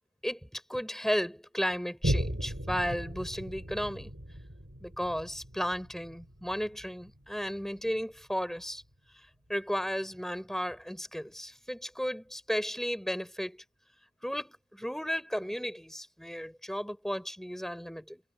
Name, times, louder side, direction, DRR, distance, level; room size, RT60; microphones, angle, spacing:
voice 1, 0.2-4.1 4.8-8.8 9.5-13.6 14.2-18.2, equal, ahead, 4.4 m, -34 dB
Boom, 2.0-8.9 9.5-9.6, equal, 70° right, 4.7 m, -37 dB
head